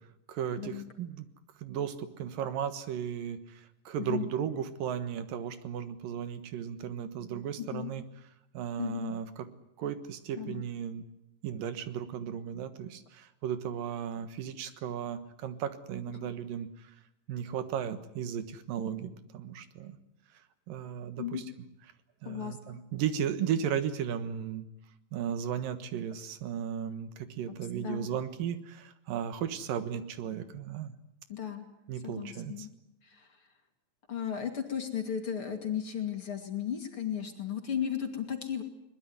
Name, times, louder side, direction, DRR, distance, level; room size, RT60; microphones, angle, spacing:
voice 1, 0.3-1.3 1.6-8.0 8.5-9.5 9.8-11.1 11.4-16.9 17.3-20.0 20.7-21.4 22.2-24.6 25.1-30.9 31.9-32.7, right 8 dB, 75° right, 11 dB, 3.1 m, -35 dB
voice 2, 7.6-7.9 8.8-9.1 10.4-10.6 16.2-16.3 21.2-21.4 22.2-22.8 27.5-28.1 31.3-31.7 32.0-32.7 33.0-33.3 34.1-38.6, left 9 dB, 40° left, 5 dB, 3.0 m, -35 dB
22.0 x 20.5 x 9.6 m, 0.80 s
omnidirectional pair, 4.0 m